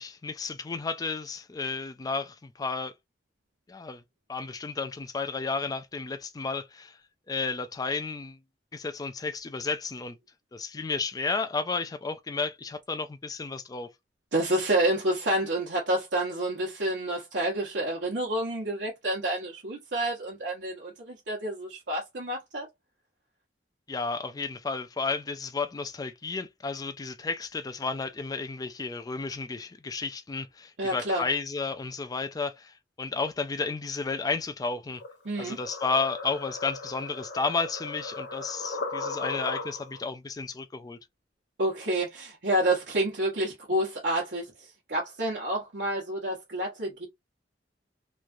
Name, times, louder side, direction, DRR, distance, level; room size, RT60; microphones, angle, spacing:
voice 1, 0.0-2.9 3.7-4.0 4.3-7.0 7.3-8.4 8.7-10.2 10.5-13.9 23.9-35.0 35.4-41.0, left 4 dB, 20° left, 0.3 m, -32 dB
voice 2, 14.3-22.7 30.8-31.2 35.2-35.6 41.6-47.1, right 1 dB, 90° right, 1.0 m, -29 dB
sound 1, 35.0-40.1, left 3 dB, 85° left, 1.0 m, -37 dB
3.1 x 2.3 x 2.6 m
head